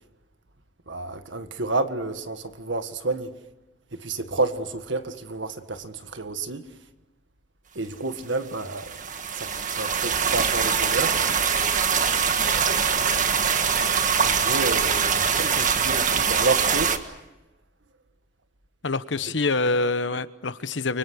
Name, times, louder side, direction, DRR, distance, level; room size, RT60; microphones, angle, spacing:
voice 1, 0.9-3.3 4.0-6.7 7.7-9.0 9.3-11.2 14.2-17.0, right 3 dB, 90° right, 1.8 m, -30 dB
sound 1, 8.6-17.0, right 6 dB, 45° right, 1.7 m, -23 dB
voice 2, 18.8-21.0, left 3 dB, 85° left, 1.1 m, -25 dB
30.0 x 24.5 x 6.4 m
head